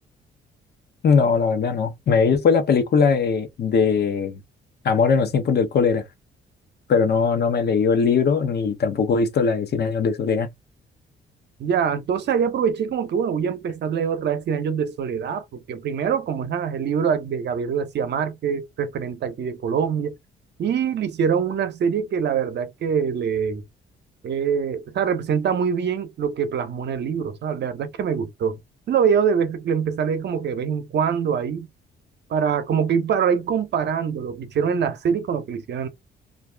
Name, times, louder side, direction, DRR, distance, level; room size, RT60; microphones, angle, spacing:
voice 1, 1.0-4.4 4.8-6.0 6.9-10.5, left 5 dB, 55° left, 0.8 m, -20 dB
voice 2, 11.6-20.1 20.6-23.6 24.2-28.6 28.9-31.7 32.3-35.9, right 7 dB, 60° right, 0.7 m, -24 dB
2.5 x 2.3 x 3.3 m
cardioid pair, 90°, 20 cm